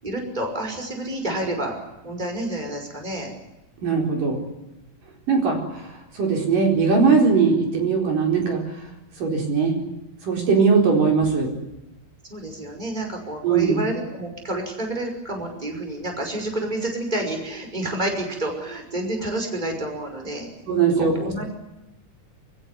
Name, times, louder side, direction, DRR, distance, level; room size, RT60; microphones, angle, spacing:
voice 1, 0.0-1.7 2.0-3.3 12.3-21.4, right 1 dB, 10° right, 3 dB, 5.6 m, -29 dB
voice 2, 3.8-4.4 5.3-5.9 6.1-8.6 9.2-9.8 10.2-11.5 13.4-13.8 20.7-21.3, right 5 dB, 70° right, 1 dB, 6.0 m, -20 dB
27.5 x 16.5 x 9.8 m, 0.94 s
omnidirectional pair, 4.0 m